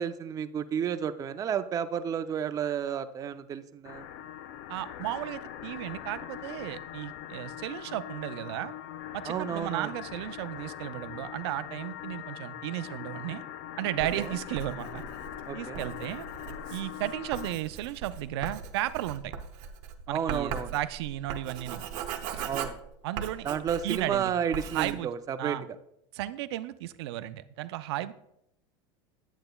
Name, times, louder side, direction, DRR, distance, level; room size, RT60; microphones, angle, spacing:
voice 1, 0.0-4.1 9.2-9.9 14.2-14.4 15.5-15.9 20.1-20.7 22.4-22.8 23.4-25.6, right 8 dB, 25° right, 10 dB, 0.4 m, -31 dB
sound 1, 3.8-17.6, left 11 dB, 70° left, 0.5 m, -42 dB
voice 2, 4.7-8.7 9.1-13.4 13.8-15.0 15.5-16.2 16.7-19.3 20.1-21.8 22.3-22.5 23.0-23.5 23.8-24.3 24.7-25.1 25.4-25.6 26.1-28.1, right 14 dB, 85° right, 13 dB, 0.4 m, -34 dB
Writing, 14.0-24.2 24.5-24.9, right 7 dB, 60° right, 0.8 m, -39 dB
8.6 x 7.9 x 2.2 m, 0.77 s
supercardioid pair, 120°, 13 cm